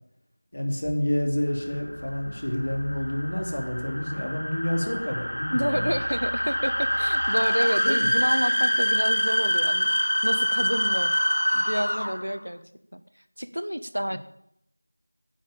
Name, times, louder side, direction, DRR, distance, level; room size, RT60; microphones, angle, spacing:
voice 1, 0.5-5.9 7.8-8.1 14.1-14.2, left 1 dB, 50° left, 2 dB, 2.8 m, -28 dB
sound 1, 0.8-7.2, left 1 dB, 10° left, 2.0 m, -44 dB
sound 2, 1.7-12.4, equal, 75° left, 0.6 m, -25 dB
voice 2, 5.5-11.1 11.5-12.6 12.9-13.0 13.4-14.2, equal, 80° right, 11 dB, 1.0 m, -29 dB
10.5 x 7.5 x 8.9 m, 0.76 s
figure-of-eight pair, 175°, 0 cm